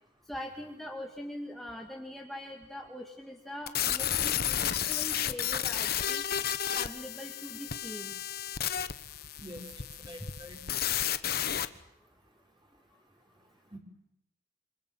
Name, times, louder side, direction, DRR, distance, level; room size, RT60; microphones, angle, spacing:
voice 1, 0.3-4.6 4.9-6.2 6.7-8.2 10.2-10.3, left 1 dB, ahead, 0 dB, 2.1 m, -42 dB
sound 1, 3.7-11.7, left 10 dB, 50° left, 1.2 m, -32 dB
voice 2, 9.4-11.0 13.7-13.8, equal, 25° right, 2 dB, 5.4 m, -47 dB
28.0 x 26.0 x 7.4 m, 0.77 s
head